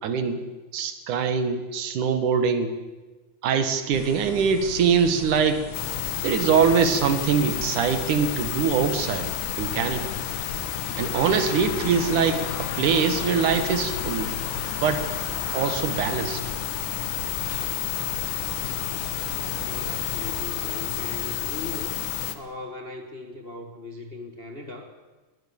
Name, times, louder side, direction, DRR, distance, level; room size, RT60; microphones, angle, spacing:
voice 1, 0.0-0.4 0.7-2.7 3.4-5.6 6.2-9.3 9.6-10.1 11.0-14.3 14.8-15.0 15.5-16.4, right 6 dB, 80° right, 9 dB, 3.2 m, -23 dB
sound 1, 3.9-20.4, left 3 dB, 45° left, 3.3 m, -40 dB
sound 2, 5.7-22.4, left 12 dB, 85° left, 2.7 m, -31 dB
Traffic noise roadway noise / Bicycle, 10.9-19.6, right 1 dB, 35° right, 5.7 m, -46 dB
voice 2, 19.3-22.1 22.3-24.9, left 3 dB, 30° left, 4 dB, 1.2 m, -39 dB
21.0 x 19.5 x 7.2 m, 1.2 s
omnidirectional pair, 3.5 m